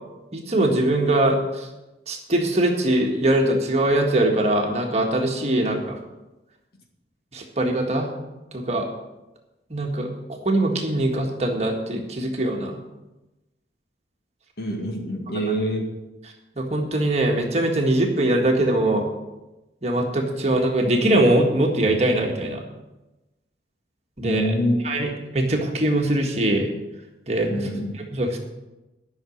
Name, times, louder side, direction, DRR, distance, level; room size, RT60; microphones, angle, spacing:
voice 1, 0.3-1.7 2.1-6.0 7.3-8.1 8.5-8.9 9.7-12.8 16.6-19.1 19.8-22.6 24.2-24.6 24.8-26.7 27.3-27.7 28.1-28.4, right 1 dB, 35° right, 2 dB, 1.7 m, -22 dB
voice 2, 14.6-15.8 24.2-25.1 27.5-27.9, equal, 60° left, 2 dB, 2.1 m, -26 dB
11.5 x 6.1 x 8.7 m, 1.0 s
head